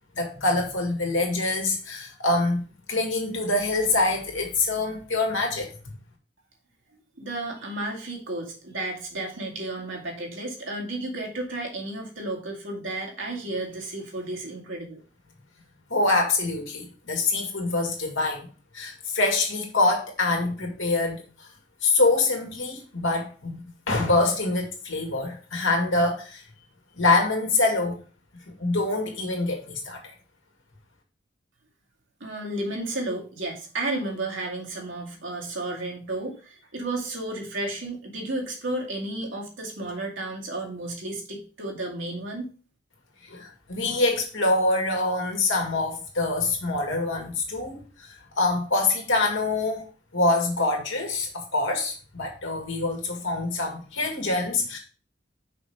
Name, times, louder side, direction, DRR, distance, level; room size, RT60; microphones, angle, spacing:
voice 1, 0.2-2.6 2.9-5.7 15.9-18.5 18.7-21.2 21.8-26.4 27.0-28.0 28.6-30.0 43.3-48.1 48.4-49.9 50.1-54.8, left 2 dB, 85° left, 2 dB, 2.2 m, -25 dB
voice 2, 7.2-15.0 32.2-42.5, right 2 dB, 75° right, -1 dB, 2.1 m, -32 dB
5.8 x 5.2 x 4.9 m, 0.37 s
head